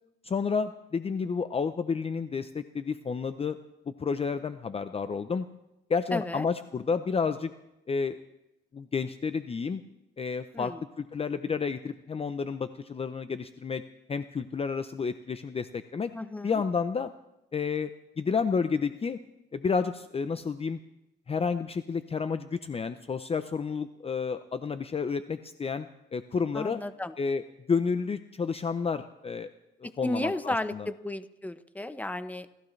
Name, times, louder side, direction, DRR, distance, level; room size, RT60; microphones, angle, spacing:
voice 1, 0.2-3.6 4.0-5.5 5.9-7.5 7.9-8.2 8.7-9.8 10.2-13.8 14.1-16.1 16.4-17.1 17.5-17.9 18.2-19.2 19.5-20.8 21.3-25.9 26.1-26.8 27.2-27.4 27.7-29.5 30.0-30.9, left 5 dB, 30° left, 11 dB, 0.6 m, -30 dB
voice 2, 6.1-6.5 10.5-10.8 16.1-16.6 26.5-27.1 29.8-32.5, left 1 dB, 10° left, 11 dB, 1.0 m, -33 dB
29.0 x 14.5 x 3.3 m, 0.91 s
cardioid pair, 90°, 20 cm